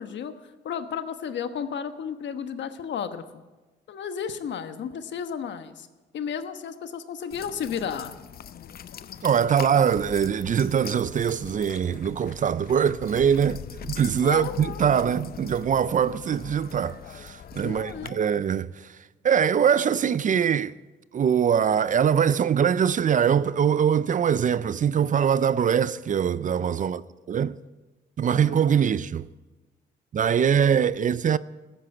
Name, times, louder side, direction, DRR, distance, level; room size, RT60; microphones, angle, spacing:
voice 1, 0.0-3.4 3.9-5.9 6.1-8.1 14.2-15.1 17.6-18.2 28.3-28.6, left 7 dB, 65° left, 1.2 m, -33 dB
sound 1, 7.3-18.1, left 9 dB, 50° left, 0.6 m, -41 dB
voice 2, 9.2-19.0 19.2-20.7 21.1-27.0 27.3-27.6 28.2-29.3 30.1-31.4, right 8 dB, 40° right, 0.5 m, -23 dB
15.0 x 10.0 x 7.7 m
cardioid pair, 90°, 20 cm